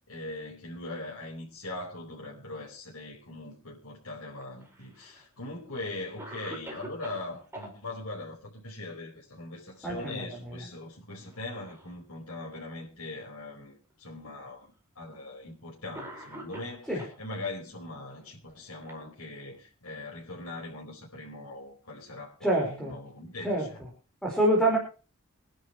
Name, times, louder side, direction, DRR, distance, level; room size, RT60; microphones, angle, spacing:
voice 1, 0.1-14.7 14.9-23.8, left 2 dB, 85° left, 4.8 m, -41 dB
Cough, 4.4-5.2 5.8-5.9 6.2-7.7 9.6-10.0 10.3-10.5 11.3-12.0 12.8-12.9 13.9-14.0 15.1-15.3 15.9-17.2 18.2-19.6, right 1 dB, 10° right, 4.9 m, -45 dB
voice 2, 9.8-10.5 16.9-17.0 22.4-22.9 23.4-23.7 24.2-24.8, right 1 dB, 5° left, 4.6 m, -26 dB
25.5 x 11.0 x 3.1 m
head